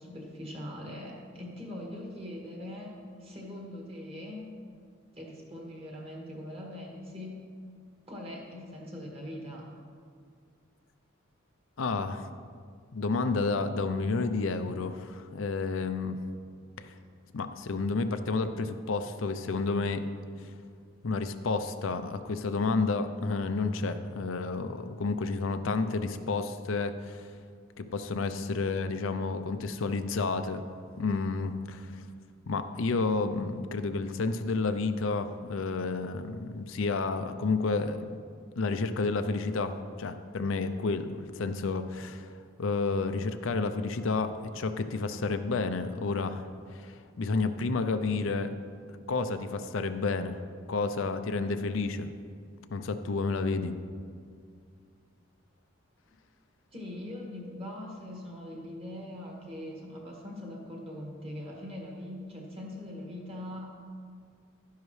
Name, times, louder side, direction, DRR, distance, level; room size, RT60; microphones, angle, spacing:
voice 1, 0.0-2.9 3.2-4.5 5.1-7.4 8.1-9.7 56.7-63.8, left 1 dB, 30° right, -2 dB, 1.7 m, -41 dB
voice 2, 11.8-12.3 12.9-16.2 16.8-16.9 17.3-20.0 21.0-27.3 27.8-30.6 31.0-32.0 32.5-38.2 38.6-42.3 42.6-46.4 46.7-48.5 49.1-50.4 50.7-52.1 52.7-53.7, left 3 dB, 75° left, 9 dB, 0.5 m, -30 dB
12.0 x 10.5 x 3.2 m, 2.1 s
head